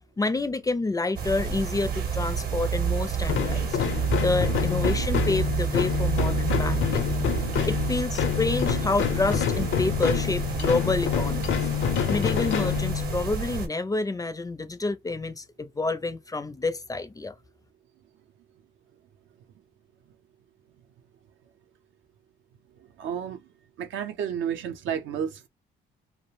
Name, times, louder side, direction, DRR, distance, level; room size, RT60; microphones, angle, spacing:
voice 1, 0.2-3.8 4.2-7.1 7.7-11.6 12.1-17.3, left 3 dB, 20° left, 0.4 m, -28 dB
sound 1, 1.2-13.7, right 6 dB, 50° right, 0.8 m, -29 dB
sound 2, 3.2-13.4, left 10 dB, 75° left, 0.6 m, -27 dB
voice 2, 22.8-23.5 23.8-25.5, right 8 dB, 80° right, 0.5 m, -32 dB
2.4 x 2.0 x 3.1 m
cardioid pair, 90°, 20 cm